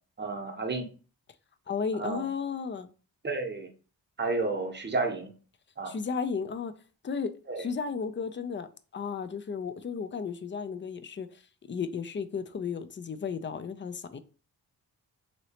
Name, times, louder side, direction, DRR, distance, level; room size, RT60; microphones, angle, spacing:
voice 1, 0.2-0.9 1.9-2.3 3.2-3.7 4.2-5.3 5.8-5.9 7.5-7.6, right 3 dB, 25° right, 0.8 m, -31 dB
voice 2, 1.7-2.9 5.9-6.7 7.0-8.7 8.9-11.4 11.7-14.2, left 5 dB, 30° left, 0.4 m, -34 dB
3.0 x 2.8 x 2.8 m
cardioid pair, 45°, 43 cm